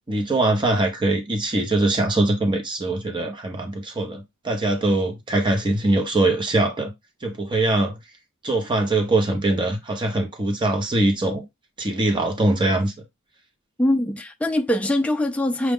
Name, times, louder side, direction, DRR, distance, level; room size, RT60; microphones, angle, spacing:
voice 1, 0.1-6.9 7.2-7.9 8.4-11.4 11.8-12.9, right 2 dB, 20° right, 0.7 m, -22 dB
voice 2, 13.8-15.7, left 1 dB, 5° left, 0.4 m, -22 dB
6.1 x 2.3 x 3.6 m
head